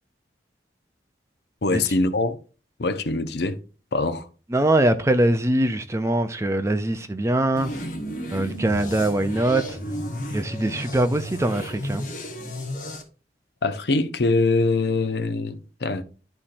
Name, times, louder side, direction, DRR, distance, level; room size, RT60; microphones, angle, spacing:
voice 1, 1.6-2.4 2.8-3.6 3.9-4.3 13.6-16.0, left 3 dB, 60° left, 0.6 m, -23 dB
voice 2, 4.5-7.7 8.3-9.8 10.3-12.1, right 1 dB, 15° right, 0.4 m, -22 dB
sound 1, 7.6-13.0, equal, 45° left, 1.2 m, -33 dB
11.5 x 4.3 x 2.5 m
head